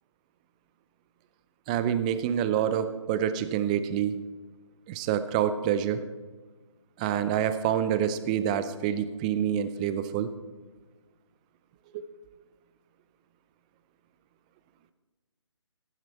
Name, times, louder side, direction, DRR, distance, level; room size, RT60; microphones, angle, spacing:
voice 1, 1.7-4.2 4.9-6.0 7.0-10.3 11.9-12.0, right 9 dB, 15° right, 12 dB, 0.5 m, -27 dB
13.5 x 12.5 x 4.3 m, 1.3 s
hypercardioid pair, 155°, 16 cm